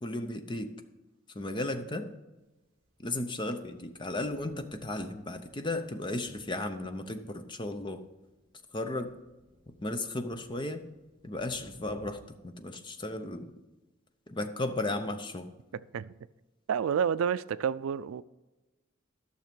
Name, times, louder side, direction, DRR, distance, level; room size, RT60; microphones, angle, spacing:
voice 1, 0.0-0.7 1.3-2.1 3.0-8.0 8.7-9.2 9.8-10.8 11.2-13.5 14.3-15.5, left 2 dB, 20° left, 0.6 m, -35 dB
Thunder, 2.6-12.1, equal, 30° right, 2.0 m, -60 dB
voice 2, 16.7-18.2, right 7 dB, 85° right, 0.3 m, -29 dB
12.0 x 6.4 x 5.2 m
head